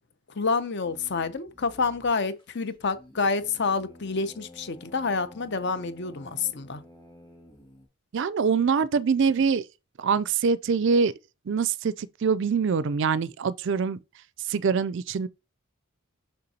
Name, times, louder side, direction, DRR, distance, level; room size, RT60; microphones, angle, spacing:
voice 1, 0.3-6.8, left 4 dB, 50° left, 0.7 m, -28 dB
sound 1, 0.8-7.9, left 1 dB, 20° left, 2.1 m, -51 dB
voice 2, 8.1-9.6 10.0-11.1 11.5-14.0 14.5-15.3, right 5 dB, 55° right, 0.4 m, -24 dB
6.7 x 5.7 x 2.8 m
head